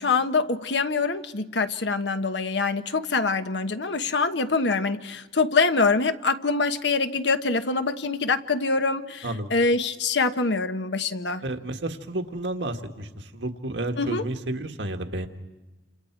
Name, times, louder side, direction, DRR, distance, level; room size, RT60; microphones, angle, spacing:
voice 1, 0.0-11.4 14.0-14.2, left 4 dB, 80° left, 9 dB, 1.2 m, -25 dB
voice 2, 11.4-15.3, right 1 dB, 85° right, 5 dB, 1.8 m, -31 dB
30.0 x 27.0 x 4.7 m, 1.1 s
head